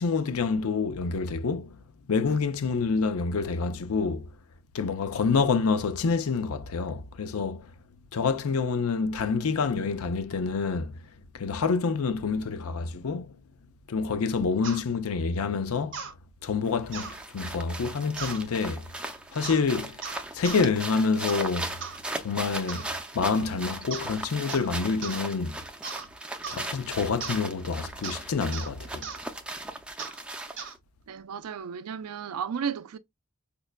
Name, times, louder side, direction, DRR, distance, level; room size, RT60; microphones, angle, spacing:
voice 1, 0.0-1.8 2.1-4.3 4.7-7.7 8.1-11.0 11.3-13.4 13.9-16.0 16.4-18.9 19.3-20.0 20.3-21.7 22.2-22.9 23.1-25.6 26.5-29.1, left 4 dB, 70° left, 0.5 m, -27 dB
sound 1, 14.6-14.8 15.9-16.1 16.9-17.2 18.2-18.4 19.4-19.6 20.0-20.6 21.3-21.5 21.8-22.0 22.7-22.9 23.9-24.2 24.5-24.7 25.0-25.2 25.8-26.1 26.4-26.7 27.2-27.4 28.0-28.2 28.5-28.7 29.0-29.2 30.0-30.2 30.6-30.8, right 6 dB, 60° right, 0.8 m, -38 dB
sound 2, 16.7-30.8, right 1 dB, 5° right, 0.4 m, -38 dB
voice 2, 31.1-33.0, right 7 dB, 85° right, 0.4 m, -33 dB
5.2 x 2.2 x 2.3 m
head